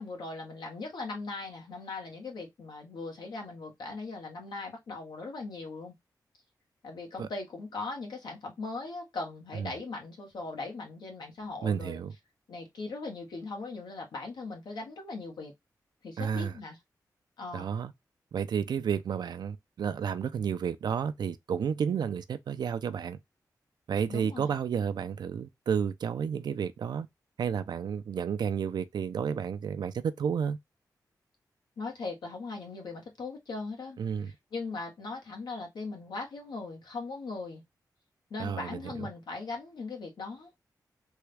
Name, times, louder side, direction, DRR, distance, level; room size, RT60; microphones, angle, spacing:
voice 1, 0.0-5.9 6.8-12.0 12.5-15.5 16.0-16.8 17.4-17.7 24.1-24.6 31.8-34.0 34.2-37.6 38.3-40.5, left 3 dB, 85° left, 1.2 m, -39 dB
voice 2, 11.6-12.1 16.2-16.5 17.5-17.9 18.3-23.2 23.9-27.1 27.4-30.6 34.0-34.3 38.4-39.1, right 7 dB, 75° right, 0.4 m, -31 dB
3.5 x 2.3 x 3.2 m
cardioid pair, 75°, 7 cm